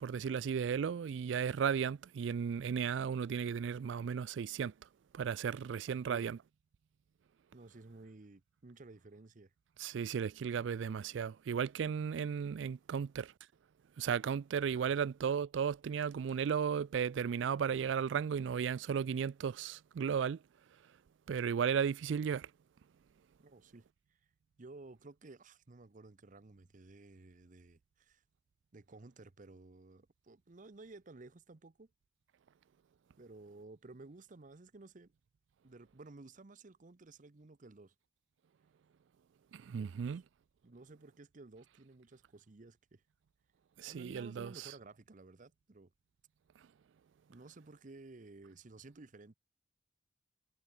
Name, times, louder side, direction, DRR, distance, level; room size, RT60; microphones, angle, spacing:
voice 1, 0.0-4.7 5.1-6.4 9.8-13.3 14.0-20.4 21.3-22.5 39.5-40.2 43.8-44.7, right 7 dB, 80° right, 0.4 m, -35 dB
voice 2, 7.5-9.5 14.7-14.9 23.4-24.2 24.6-28.2 28.7-31.9 33.2-35.1 35.6-37.9 39.8-40.2 40.6-43.0 43.9-45.9 47.3-49.3, right 3 dB, 45° right, 0.8 m, -55 dB
head